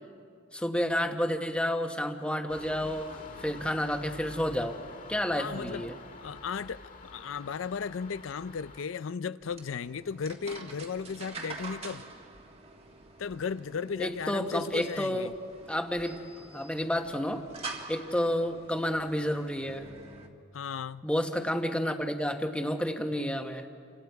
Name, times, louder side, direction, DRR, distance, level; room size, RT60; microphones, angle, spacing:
voice 1, 0.5-3.1 3.4-4.8 5.1-5.9 14.0-15.3 15.7-16.2 16.5-17.4 17.9-19.9 21.0-23.7, equal, 5° left, 1.1 m, -30 dB
sound 1, 2.5-8.8, left 2 dB, 40° left, 1.9 m, -47 dB
voice 2, 5.4-5.9 6.2-12.0 13.2-15.3 20.5-21.1, left 6 dB, 80° left, 0.5 m, -35 dB
sound 2, 9.4-20.3, right 3 dB, 30° right, 1.7 m, -46 dB
29.5 x 25.5 x 4.7 m
head